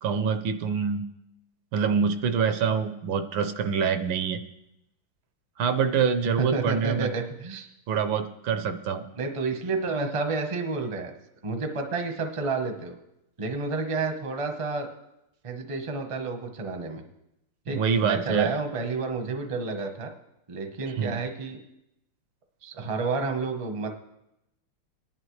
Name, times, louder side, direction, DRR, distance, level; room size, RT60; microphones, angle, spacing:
voice 1, 0.0-1.0 1.7-4.4 5.6-7.1 7.9-9.0 17.7-18.5 21.0-21.1, right 6 dB, 70° right, 9 dB, 1.3 m, -25 dB
voice 2, 6.4-7.7 9.1-11.1 11.4-13.0 13.4-14.9 15.4-17.0 17.7-20.1 20.5-21.6 22.6-23.9, right 4 dB, 30° right, 5 dB, 0.6 m, -30 dB
21.5 x 10.5 x 3.2 m, 0.86 s
omnidirectional pair, 2.3 m